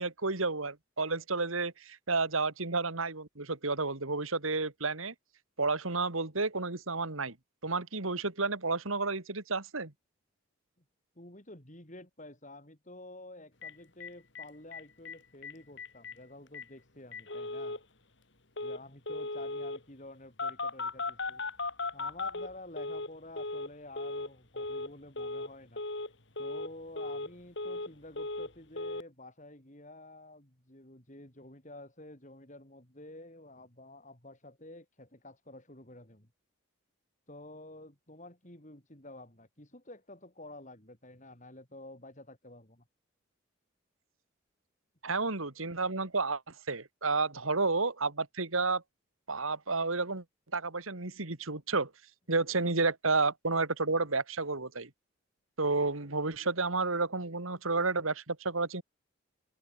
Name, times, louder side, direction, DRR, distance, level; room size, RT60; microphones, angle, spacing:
voice 1, 0.0-5.1 5.6-7.3 7.6-9.9 45.0-46.4 46.7-48.8 49.3-50.2 50.5-51.9 52.3-54.9 55.6-58.8, right 3 dB, 85° right, 2.6 m, -31 dB
voice 2, 11.2-17.8 18.6-21.4 21.9-25.8 26.4-36.3 37.3-42.8, left 2 dB, 35° left, 4.1 m, -50 dB
Telephone, 13.6-13.7 14.0-14.1 14.4-14.5 14.7-15.2 15.4-15.5 15.8-16.1 16.5-16.6 17.1-17.8 18.6-18.8 19.1-19.8 20.4-23.1 23.4-23.7 24.0-24.3 24.6-24.9 25.2-25.5 25.8-26.1 26.4-26.7 27.0-27.9 28.2-28.5 28.8-29.0, left 2 dB, 60° left, 3.4 m, -37 dB
head